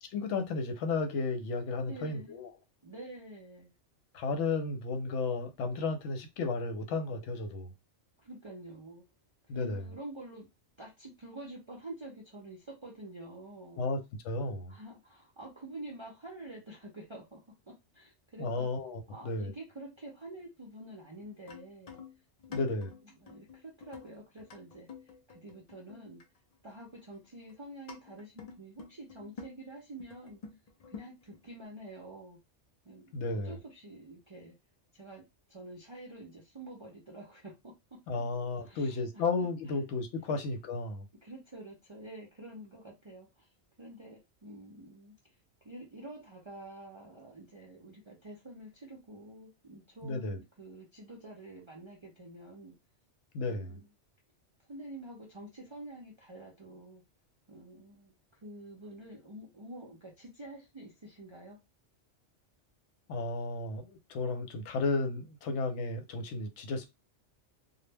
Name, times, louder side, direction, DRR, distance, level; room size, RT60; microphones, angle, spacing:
voice 1, 0.1-2.5 4.1-7.7 9.5-9.9 13.8-14.7 18.4-19.5 22.5-22.9 33.1-33.6 38.1-41.1 50.0-50.4 53.3-53.8 63.1-66.8, left 3 dB, 80° left, 0.9 m, -33 dB
voice 2, 1.9-2.3 2.8-3.7 8.2-9.0 9.5-10.5 10.8-13.8 14.7-18.7 19.1-22.0 22.5-22.8 23.1-26.2 26.6-30.4 30.9-32.4 32.9-34.5 34.9-37.7 38.2-38.3 38.6-39.8 40.3-40.4 41.2-43.5 43.8-45.4 45.6-52.7 53.4-53.9 54.7-57.0 57.5-58.1 58.4-61.6, right 1 dB, 45° right, 0.3 m, -48 dB
sound 1, 21.2-26.4 26.6-26.7 27.1-27.5 27.9-29.5 30.0-31.5, left 6 dB, 50° left, 0.4 m, -48 dB
2.1 x 2.0 x 3.3 m
omnidirectional pair, 1.2 m